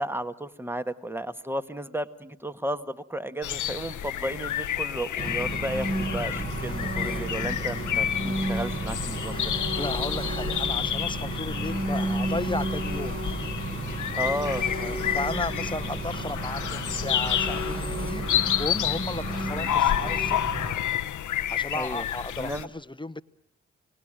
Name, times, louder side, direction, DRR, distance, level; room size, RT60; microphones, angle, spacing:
voice 1, 0.0-9.5 14.2-14.7 19.5-19.7 21.7-22.1 22.4-22.7, right 1 dB, 10° right, 12 dB, 1.6 m, -33 dB
sound 1, 3.4-22.6, left 10 dB, 90° left, 0.9 m, -30 dB
Engine, 5.2-20.7, right 1 dB, 45° right, 6.0 m, -32 dB
voice 2, 9.3-13.2 14.8-18.3 18.6-20.6 21.5-23.2, left 2 dB, 15° left, 13 dB, 1.0 m, -34 dB
29.0 x 19.0 x 9.0 m, 0.75 s
supercardioid pair, 45°, 29 cm